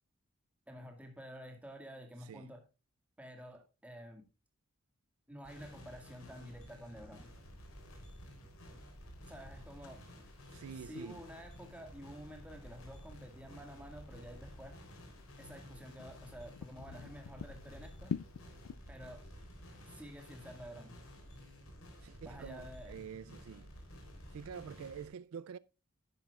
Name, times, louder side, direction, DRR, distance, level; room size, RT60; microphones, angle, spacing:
voice 1, 0.7-2.6 3.2-4.2 5.3-7.3 9.3-10.0 10.8-14.8 15.4-18.1 18.9-19.2 19.9-21.0 22.2-23.0, equal, 5° right, 1.9 m, -50 dB
voice 2, 2.2-2.5 10.5-11.2 22.0-23.7 24.3-25.6, right 7 dB, 75° right, 0.3 m, -47 dB
sound 1, 5.4-25.1, equal, 70° left, 3.6 m, -53 dB
sound 2, 7.2-18.8, left 7 dB, 90° left, 0.3 m, -50 dB
10.5 x 10.0 x 2.4 m
head